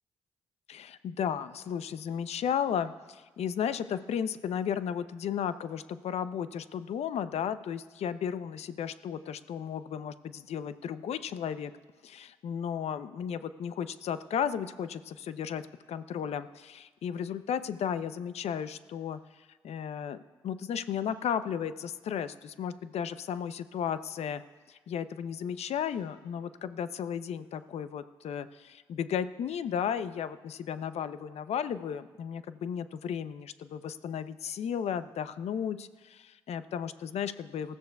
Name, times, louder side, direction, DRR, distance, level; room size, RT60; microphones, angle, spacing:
voice 1, 0.7-11.7 12.0-19.2 19.6-20.2 20.4-24.4 24.7-37.8, left 8 dB, 65° left, 13 dB, 0.7 m, -34 dB
26.5 x 14.0 x 2.4 m, 1.3 s
hypercardioid pair, 40°, 12 cm